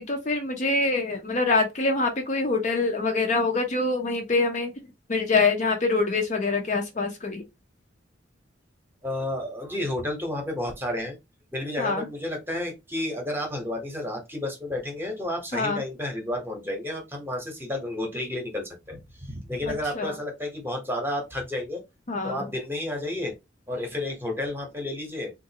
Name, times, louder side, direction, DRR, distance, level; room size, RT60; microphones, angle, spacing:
voice 1, 0.0-4.7 5.1-7.4 11.8-12.1 15.5-15.8 20.0-20.2 22.1-22.5, left 3 dB, 40° left, 0.6 m, -25 dB
voice 2, 9.0-11.2 11.5-21.8 22.2-23.3 23.7-25.3, left 1 dB, 10° right, 0.9 m, -31 dB
3.6 x 2.4 x 2.8 m
head